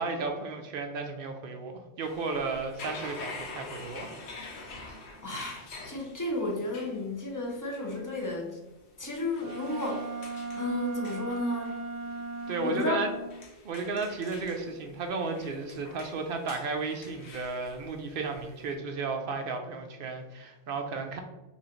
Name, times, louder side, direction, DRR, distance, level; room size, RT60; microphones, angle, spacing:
voice 1, 0.0-4.1 12.5-13.1 13.6-21.2, right 4 dB, 60° right, 4 dB, 0.6 m, -34 dB
sound 1, 2.0-18.7, left 3 dB, 65° left, 0.9 m, -47 dB
voice 2, 5.2-8.6 9.0-11.8 12.6-13.0, left 1 dB, 25° left, -1 dB, 0.4 m, -33 dB
Wind instrument woodwind instrument, 9.4-13.4, right 3 dB, 90° right, 1.1 m, -37 dB
5.4 x 2.4 x 3.0 m, 1.0 s
omnidirectional pair, 1.3 m